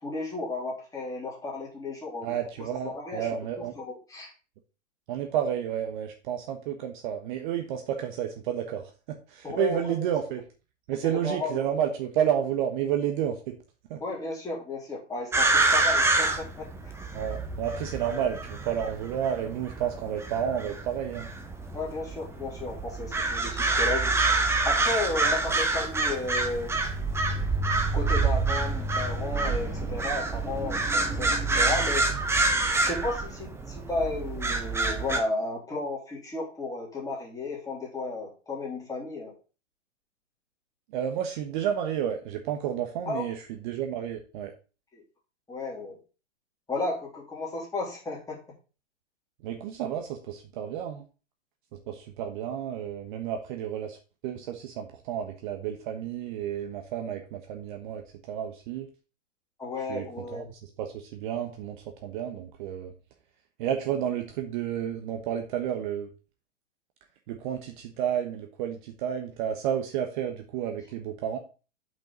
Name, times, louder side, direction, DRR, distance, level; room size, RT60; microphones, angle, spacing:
voice 1, 0.0-2.3 2.8-3.3 3.8-4.3 9.4-10.1 11.0-11.6 14.0-16.7 21.7-24.1 24.6-26.7 27.9-32.1 32.8-39.3 43.1-43.2 44.9-45.0 45.5-46.0 46.7-48.4 59.6-60.5, left 2 dB, 10° left, -3 dB, 3.2 m, -33 dB
voice 2, 2.2-3.8 5.1-10.4 10.9-13.6 13.9-14.0 17.1-21.3 25.2-25.6 40.9-44.5 49.4-51.0 51.7-54.0 54.2-58.9 59.9-60.1 60.3-62.9 63.6-66.1 67.3-71.4, right 9 dB, 40° right, 5 dB, 1.2 m, -31 dB
sound 1, 15.3-35.2, right 3 dB, 5° right, 0.9 m, -27 dB
8.8 x 5.5 x 4.0 m, 0.34 s
figure-of-eight pair, 115°, 38 cm